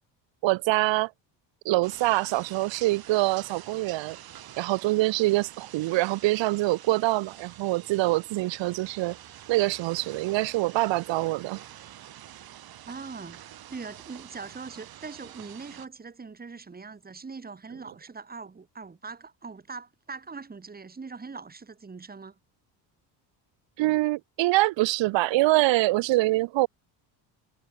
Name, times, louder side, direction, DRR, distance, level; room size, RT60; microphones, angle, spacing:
voice 1, 0.4-1.1 1.6-4.2 4.6-9.2 9.5-11.6 23.8-26.7, right 19 dB, 85° right, 2.6 m, -25 dB
sound 1, 1.8-15.9, right 12 dB, 55° right, 3.4 m, -47 dB
voice 2, 12.9-13.4 13.7-22.4, right 4 dB, 20° right, 5.6 m, -41 dB
cardioid pair, 140°, 44 cm